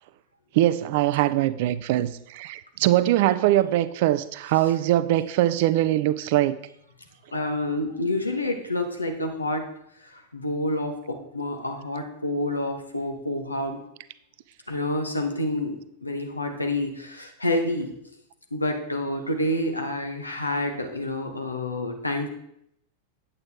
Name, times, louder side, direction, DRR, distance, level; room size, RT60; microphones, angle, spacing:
voice 1, 0.6-6.6, right 14 dB, 50° right, 15 dB, 0.4 m, -22 dB
voice 2, 7.3-9.6 10.1-13.8 14.7-17.9 18.5-22.3, left 1 dB, 80° left, 3 dB, 1.2 m, -28 dB
8.8 x 8.2 x 3.6 m, 0.76 s
figure-of-eight pair, 90°, 0 cm